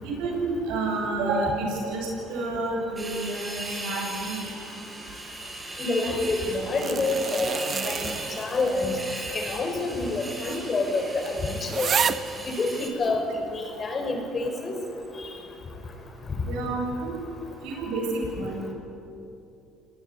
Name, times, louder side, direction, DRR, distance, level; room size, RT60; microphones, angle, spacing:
voice 1, 0.0-4.5 16.4-17.2 17.6-18.7, right 2 dB, 75° right, 1 dB, 7.7 m, -29 dB
sound 1, 3.0-12.9, right 2 dB, 20° right, 5.7 m, -38 dB
voice 2, 5.8-8.1 8.4-8.9 9.3-11.9 12.5-13.2 13.5-14.7 15.2-15.3, left 3 dB, 35° left, 3 dB, 6.0 m, -27 dB
sound 2, 6.4-8.9 9.2-9.3 10.2-10.3 10.6-10.7 11.3-11.4 11.6-12.3 13.0-13.1, right 7 dB, 45° right, 1.1 m, -30 dB
26.0 x 19.5 x 9.9 m, 2.8 s
supercardioid pair, 85°, 0 cm